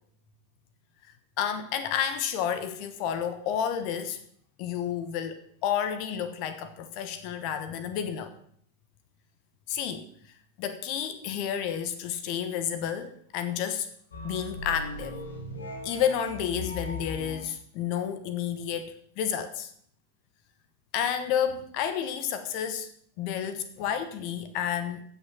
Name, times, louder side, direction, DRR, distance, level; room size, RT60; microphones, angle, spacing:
voice 1, 1.4-4.2 4.6-8.3 9.7-10.1 10.6-13.9 14.2-15.2 15.8-19.7 20.9-22.9 23.2-25.0, left 9 dB, 45° left, 11 dB, 1.1 m, -30 dB
sound 1, 14.1-17.5, left 1 dB, 70° left, 2.2 m, -38 dB
15.5 x 6.5 x 6.2 m, 0.63 s
figure-of-eight pair, 90°, 0 cm